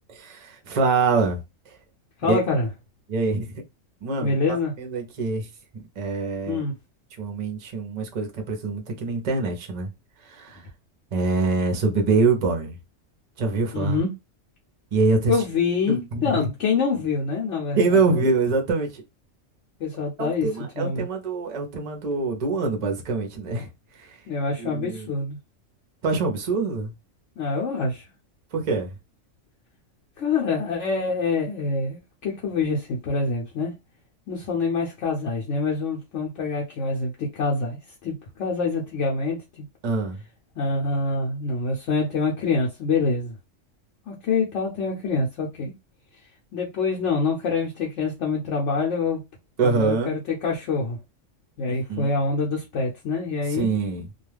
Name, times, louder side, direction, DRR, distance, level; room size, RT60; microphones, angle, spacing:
voice 1, 0.1-1.4 1.7-1.8 2.3-2.4 3.1-3.6 4.0-6.6 7.2-9.9 10.2-10.7 11.1-12.7 13.4-14.0 14.9-15.4 15.9-16.5 17.7-19.0 20.2-23.7 23.9-24.2 24.6-25.1 26.0-26.9 28.5-28.9 39.8-40.2 49.6-50.1 51.7-52.1 53.5-54.1, right 4 dB, 40° right, 0.6 m, -25 dB
voice 2, 2.2-2.7 4.2-4.7 6.5-6.7 13.7-14.1 15.3-18.2 19.8-20.5 20.8-21.1 24.3-25.4 27.4-28.0 30.2-33.7 34.3-39.6 40.6-43.3 44.1-45.7 46.5-49.2 49.6-51.0 51.6-53.7, left 4 dB, 65° left, 0.9 m, -26 dB
2.3 x 2.3 x 3.2 m
omnidirectional pair, 1.4 m